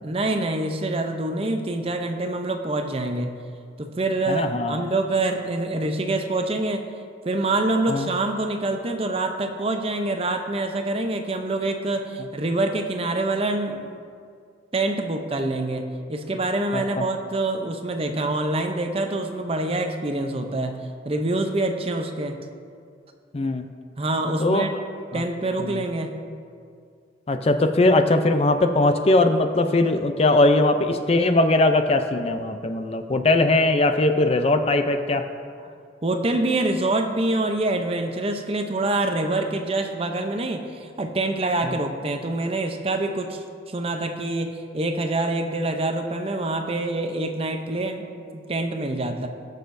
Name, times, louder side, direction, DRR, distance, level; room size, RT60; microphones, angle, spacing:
voice 1, 0.0-3.3 3.8-6.9 7.2-14.0 14.7-20.8 21.0-22.4 24.0-24.7 25.1-26.2 35.6-35.7 36.0-48.1 48.3-49.3, right 2 dB, 30° right, 5 dB, 0.6 m, -26 dB
voice 2, 4.3-4.8 7.9-8.1 16.7-17.0 23.3-23.6 24.4-24.7 25.1-25.2 25.6-25.8 27.3-35.3 41.6-41.8, left 2 dB, 35° left, 7 dB, 0.5 m, -20 dB
19.5 x 6.6 x 2.6 m, 2.2 s
head